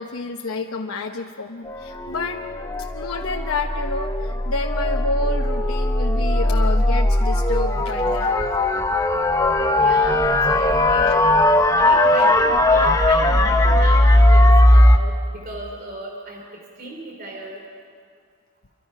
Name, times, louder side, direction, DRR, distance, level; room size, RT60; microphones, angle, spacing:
voice 1, 0.0-2.4 2.9-8.4 12.0-12.1, left 3 dB, 90° left, 2 dB, 1.0 m, -29 dB
sound 1, 1.7-15.0, left 1 dB, 15° left, 0.9 m, -18 dB
voice 2, 9.7-11.2 11.7-17.6, right 1 dB, 45° right, 0 dB, 3.2 m, -36 dB
27.0 x 24.0 x 5.7 m, 2.1 s
head